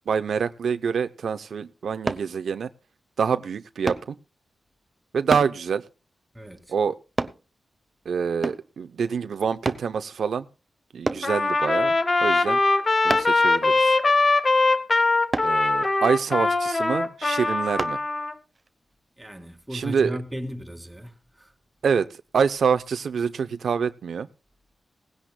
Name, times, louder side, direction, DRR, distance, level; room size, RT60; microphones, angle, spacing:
voice 1, 0.1-2.7 3.2-4.2 5.1-5.8 6.7-7.0 8.1-10.4 10.9-11.9 12.2-12.6 13.0-14.0 15.4-18.0 19.7-20.2 21.8-24.3, right 6 dB, 80° right, 0.7 m, -26 dB
sound 1, 2.1-2.3 3.9-4.1 5.3-5.6 7.2-7.4 8.4-8.7 9.7-9.9 11.1-11.3 13.1-13.4 15.3-15.6 17.8-18.0 18.6-18.7, right 2 dB, 25° right, 0.9 m, -28 dB
Trumpet, 11.2-18.3, left 3 dB, 35° left, 1.2 m, -21 dB
voice 2, 19.2-21.5, equal, 10° right, 2.3 m, -36 dB
18.0 x 16.5 x 2.2 m
wide cardioid pair, 125°, 0 cm